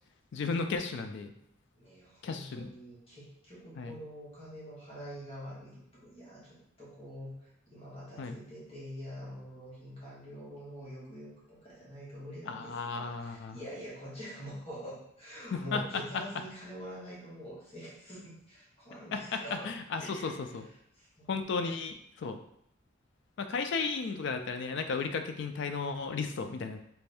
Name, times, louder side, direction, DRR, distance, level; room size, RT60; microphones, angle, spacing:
voice 1, 0.3-1.3 2.2-2.7 3.8-4.0 8.2-8.4 12.5-13.6 15.5-16.2 19.1-20.7 21.3-22.4 23.4-26.8, left 4 dB, 60° left, 7 dB, 0.4 m, -34 dB
voice 2, 1.7-19.7 20.0-20.6 20.9-21.7, equal, 30° left, -8 dB, 1.3 m, -45 dB
3.3 x 2.6 x 3.4 m, 0.73 s
head